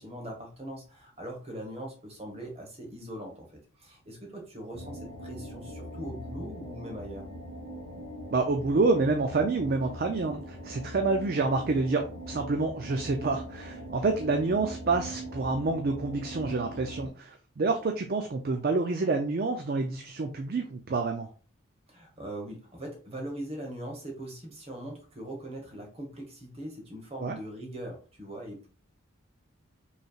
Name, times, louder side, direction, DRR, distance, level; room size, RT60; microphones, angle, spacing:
voice 1, 0.0-7.3 21.9-28.7, right 1 dB, 30° right, 1 dB, 1.2 m, -41 dB
sound 1, 4.7-17.1, right 1 dB, 85° right, 1.4 m, -41 dB
voice 2, 8.3-21.3 27.2-27.4, right 3 dB, 45° right, 5 dB, 0.4 m, -28 dB
5.2 x 3.2 x 2.4 m, 0.38 s
head